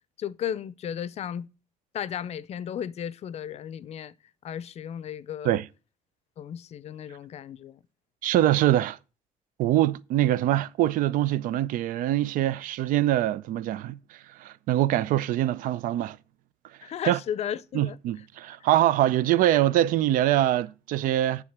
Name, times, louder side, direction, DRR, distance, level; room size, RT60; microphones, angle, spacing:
voice 1, 0.2-1.5 1.9-4.1 4.4-5.6 6.4-7.8 16.8-18.0, left 9 dB, 50° left, 0.5 m, -34 dB
voice 2, 8.2-9.0 9.6-16.2 17.1-17.2 17.7-21.4, right 13 dB, 80° right, 0.5 m, -24 dB
9.6 x 3.7 x 7.2 m
cardioid pair, 125°, 14 cm